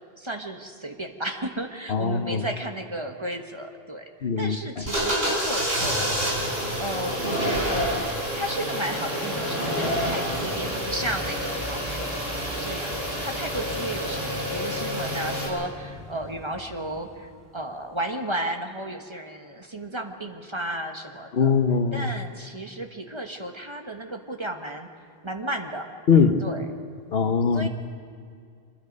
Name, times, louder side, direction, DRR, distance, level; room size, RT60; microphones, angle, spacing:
voice 1, 0.2-6.1 6.4-8.0 8.3-12.2 12.5-21.5 21.9-24.9 25.2-25.9 26.4-26.7 27.5-27.7, right 1 dB, 30° right, 4 dB, 1.3 m, -33 dB
voice 2, 1.9-2.4 4.2-4.8 21.3-22.1 26.1-26.4 27.1-27.7, left 6 dB, 70° left, 8 dB, 1.2 m, -21 dB
sound 1, 4.8-15.5, equal, 70° right, 4.6 m, -28 dB
sound 2, 8.2-17.5, equal, ahead, 2.2 m, -39 dB
25.5 x 21.0 x 5.3 m, 2.2 s
omnidirectional pair, 1.1 m